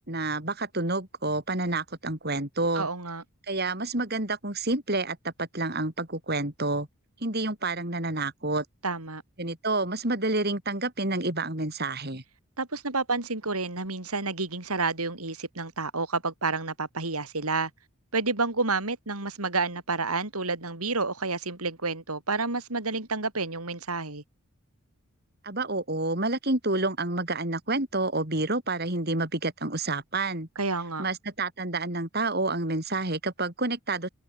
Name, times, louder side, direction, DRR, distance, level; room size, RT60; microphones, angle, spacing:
voice 1, 0.0-2.9 3.5-6.9 7.2-8.6 9.4-12.2 25.4-30.5 31.0-34.1, right 2 dB, 45° right, 3.9 m, -29 dB
voice 2, 2.7-3.2 8.8-9.2 12.6-17.7 18.1-24.2 30.6-31.1, right 3 dB, 85° right, 4.4 m, -30 dB
head